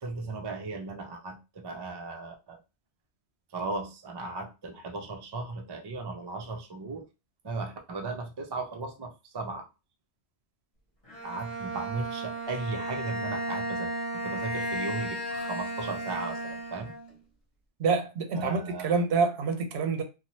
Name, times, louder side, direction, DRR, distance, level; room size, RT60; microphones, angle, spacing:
voice 1, 0.0-2.6 3.5-7.1 7.4-9.7 11.2-16.9 18.3-19.0, right 3 dB, 35° right, 0.4 m, -36 dB
Bowed string instrument, 11.1-17.1, right 1 dB, 35° left, 1.0 m, -34 dB
voice 2, 17.8-20.0, right 4 dB, 85° right, 0.9 m, -27 dB
2.7 x 2.3 x 3.0 m
omnidirectional pair, 1.1 m